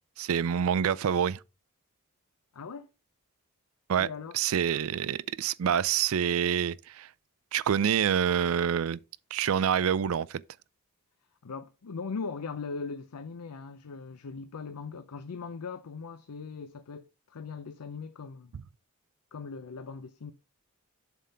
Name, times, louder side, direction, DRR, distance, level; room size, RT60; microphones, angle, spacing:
voice 1, 0.2-1.4 3.9-4.1 4.3-7.1 7.5-9.0 9.3-10.4, right 8 dB, 70° right, 0.4 m, -27 dB
voice 2, 2.5-2.9 4.0-4.4 11.4-18.5 19.3-20.3, left 4 dB, 90° left, 0.6 m, -39 dB
7.5 x 3.6 x 5.5 m
head